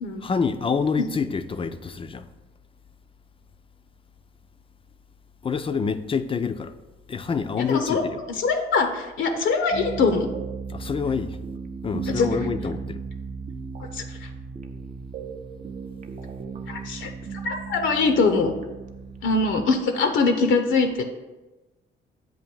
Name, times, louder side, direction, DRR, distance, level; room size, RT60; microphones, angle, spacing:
voice 1, 0.2-2.3 5.4-6.7 7.1-8.2 10.7-11.4 11.8-13.0, left 5 dB, 25° left, 0.4 m, -27 dB
voice 2, 7.7-8.0 8.4-10.3 12.2-12.3 13.8-14.0 16.7-17.1 17.4-18.5 19.2-21.0, left 4 dB, 75° left, 0.7 m, -22 dB
sound 1, 9.7-19.6, right 5 dB, 40° right, 0.5 m, -36 dB
7.7 x 2.6 x 5.4 m
cardioid pair, 90°, 20 cm